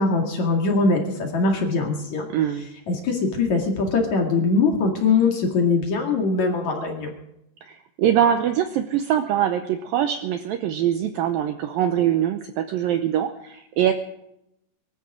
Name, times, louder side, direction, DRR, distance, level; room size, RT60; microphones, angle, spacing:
voice 1, 0.0-2.2 2.9-7.1, left 3 dB, 50° left, 1 dB, 3.1 m, -22 dB
voice 2, 2.3-2.7 7.7-13.9, right 10 dB, 80° right, 7 dB, 2.1 m, -23 dB
24.5 x 13.5 x 3.8 m, 0.82 s
omnidirectional pair, 5.0 m